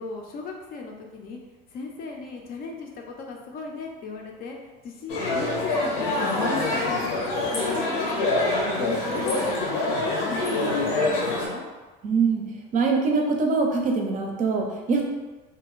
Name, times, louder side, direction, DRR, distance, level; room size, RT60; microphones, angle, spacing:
voice 1, 0.0-1.4 1.7-4.6 4.8-6.9 7.7-11.7, left 4 dB, 45° left, 1 dB, 0.5 m, -37 dB
sound 1, 5.1-11.5, left 2 dB, 80° left, 0.8 m, -25 dB
voice 2, 12.0-12.4 12.7-15.0, right 4 dB, 40° right, 1 dB, 0.5 m, -23 dB
2.8 x 2.5 x 3.0 m, 1.3 s
cardioid pair, 130°, 21 cm